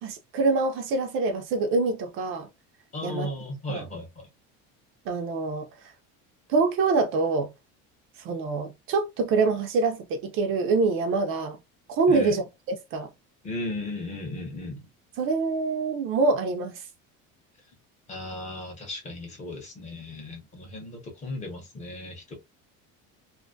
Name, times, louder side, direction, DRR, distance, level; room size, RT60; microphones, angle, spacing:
voice 1, 0.0-2.5 3.0-3.3 3.7-3.9 5.1-5.9 6.5-7.5 8.2-11.6 11.9-13.1 15.2-16.9, right 3 dB, 45° right, 0.4 m, -25 dB
voice 2, 2.9-4.3 12.1-12.4 13.4-14.9 18.1-22.4, left 2 dB, 25° left, 0.6 m, -36 dB
2.5 x 2.2 x 2.5 m
cardioid pair, 165°, 31 cm